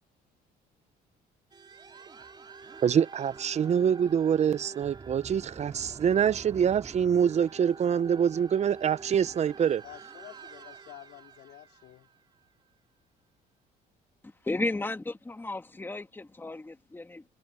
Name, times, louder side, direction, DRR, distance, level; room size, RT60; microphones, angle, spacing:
sound 1, 1.5-12.7, right 4 dB, 25° right, 2.7 m, -47 dB
voice 1, 2.8-9.8, right 8 dB, 40° right, 0.8 m, -25 dB
voice 2, 9.8-12.1, left 15 dB, 80° left, 4.2 m, -50 dB
voice 3, 14.2-17.2, left 2 dB, 10° left, 2.0 m, -34 dB
cardioid pair, 110°, 17 cm